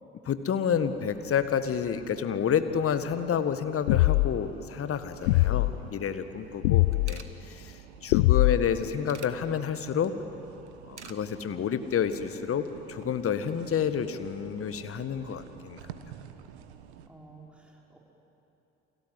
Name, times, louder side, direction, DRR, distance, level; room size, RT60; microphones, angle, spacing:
voice 1, 0.2-10.1 10.8-15.8, left 7 dB, 40° left, 11 dB, 1.7 m, -29 dB
sound 1, 0.7-17.1, right 9 dB, 70° right, 1.3 m, -50 dB
sound 2, 3.9-4.5 5.3-5.7 6.6-7.1 8.1-8.8, left 20 dB, 70° left, 0.5 m, -22 dB
sound 3, 6.5-6.6 6.8-7.3 8.5-9.3 10.7-11.2 11.5-11.8, right 6 dB, 85° right, 1.1 m, -46 dB
voice 2, 17.0-18.0, right 3 dB, 5° right, -3 dB, 5.5 m, -50 dB
29.5 x 24.0 x 7.8 m, 2.9 s
figure-of-eight pair, 50°, 34 cm